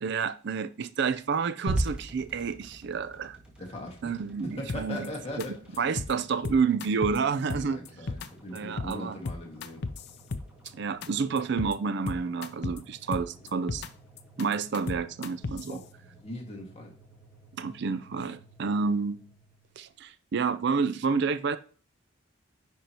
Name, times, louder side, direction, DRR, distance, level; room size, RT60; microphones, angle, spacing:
voice 1, 0.0-3.4 4.0-5.1 5.8-7.8 8.5-9.2 10.7-13.8 14.4-15.8 17.6-19.2 19.8-21.6, right 5 dB, 60° right, 13 dB, 0.4 m, -29 dB
sound 1, 1.7-19.9, right 1 dB, 5° right, 1.9 m, -43 dB
voice 2, 3.6-4.1 4.4-5.5 7.5-9.8 15.7-16.9, left 1 dB, 35° left, 0 dB, 1.8 m, -40 dB
sound 2, 4.7-5.1 5.4-5.5 5.7-6.1 6.4-7.2 7.5-8.3 8.5-8.9 9.2-10.7 11.0-11.1 11.4-11.7 12.1-12.8 13.1-13.9 14.2-15.7, left 3 dB, 60° left, 0.5 m, -34 dB
10.0 x 4.5 x 2.9 m, 0.41 s
head